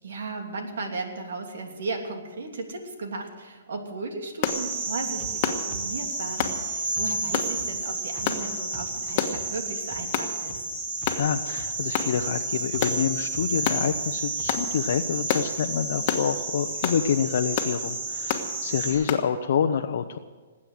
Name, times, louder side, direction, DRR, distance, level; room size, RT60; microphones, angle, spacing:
voice 1, 0.0-10.6 18.8-19.2, right 3 dB, 80° right, 4 dB, 2.9 m, -36 dB
sound 1, 4.4-4.6 5.4-5.6 6.4-6.6 7.3-7.5 8.3-8.4 9.2-9.4 10.1-10.3 11.1-11.3 11.9-12.1 12.8-13.0 13.6-13.8 14.5-14.7 15.3-15.5 16.1-16.3 16.8-17.0 17.6-17.8 18.3-18.5 19.1-19.3, left 9 dB, 35° left, 1.4 m, -27 dB
sound 2, 4.4-18.9, right 2 dB, 45° right, 4.8 m, -31 dB
sound 3, 5.2-5.3 5.7-5.8 6.4-6.5 6.9-7.1 7.6-7.7 8.2-8.3 8.7-8.8 9.3-9.4 9.9-10.0 10.5-10.6 11.0-11.3 11.6-11.7 12.1-12.2 12.7-12.8 13.3-13.4 13.9-14.0 14.4-14.5, right 2 dB, 20° right, 2.1 m, -41 dB
voice 2, 11.1-20.2, left 8 dB, 60° left, 6 dB, 0.8 m, -27 dB
19.5 x 8.8 x 7.9 m, 1.4 s
hypercardioid pair, 160°, 0 cm